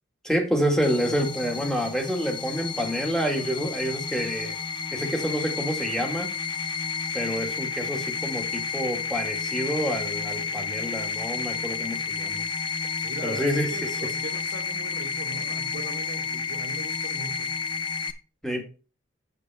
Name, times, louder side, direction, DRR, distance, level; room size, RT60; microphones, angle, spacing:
voice 1, 0.2-4.6 4.9-6.3 7.1-12.4 13.2-14.0 18.4-18.6, equal, 5° left, 1.9 m, -28 dB
sound 1, 0.8-18.1, left 5 dB, 20° left, 0.6 m, -31 dB
voice 2, 10.4-10.8 13.0-17.5, right 2 dB, 55° right, 1.6 m, -40 dB
8.5 x 8.1 x 3.5 m
head